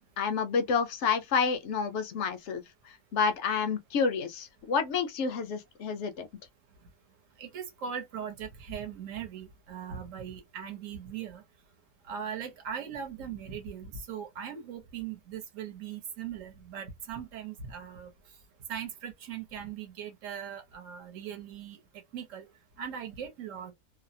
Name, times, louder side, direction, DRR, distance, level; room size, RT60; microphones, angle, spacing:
voice 1, 0.2-6.3, left 5 dB, 65° left, 0.7 m, -29 dB
voice 2, 7.4-11.4 12.0-18.1 18.7-21.8 22.1-22.5 22.8-23.7, right 8 dB, 65° right, 1.1 m, -39 dB
2.6 x 2.0 x 2.6 m
omnidirectional pair, 1.5 m